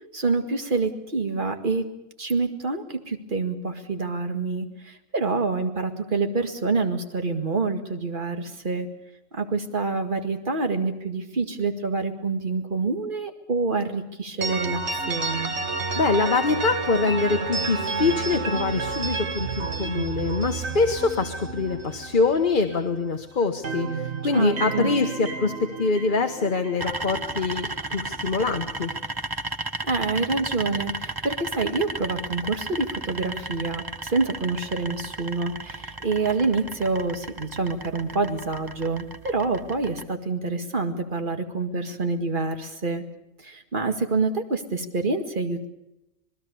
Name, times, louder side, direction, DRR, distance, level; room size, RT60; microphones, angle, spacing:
voice 1, 0.1-1.9 2.2-8.9 9.3-14.8 15.1-15.5 24.3-24.9 29.8-43.0 43.4-45.6, right 3 dB, 40° right, 6 dB, 2.1 m, -27 dB
sound 1, 14.4-23.1 23.4-27.5, right 4 dB, 60° right, 1.8 m, -31 dB
voice 2, 15.9-28.9, left 4 dB, 40° left, 5 dB, 1.3 m, -24 dB
sound 2, 26.8-40.0, right 2 dB, 20° right, 0.8 m, -34 dB
27.0 x 20.5 x 7.0 m, 0.89 s
omnidirectional pair, 1.3 m